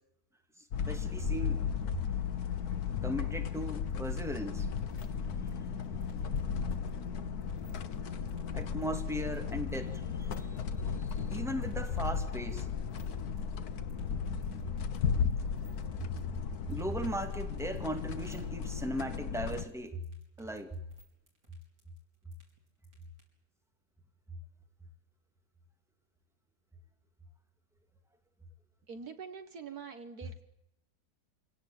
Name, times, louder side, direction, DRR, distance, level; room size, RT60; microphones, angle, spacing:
sound 1, 0.7-19.7, left 6 dB, 70° left, 1.5 m, -35 dB
voice 1, 0.9-1.6 3.0-4.7 5.2-5.6 6.0-6.4 7.5-7.9 8.5-10.5 11.0-12.7 16.0-16.1 16.7-20.0 20.4-20.8, equal, ahead, 5 dB, 2.5 m, -38 dB
sound 2, 3.9-23.2, equal, 80° right, 6.8 m, -63 dB
voice 2, 28.9-30.4, right 5 dB, 65° right, 9 dB, 2.0 m, -45 dB
26.5 x 17.5 x 8.9 m, 0.85 s
omnidirectional pair, 1.7 m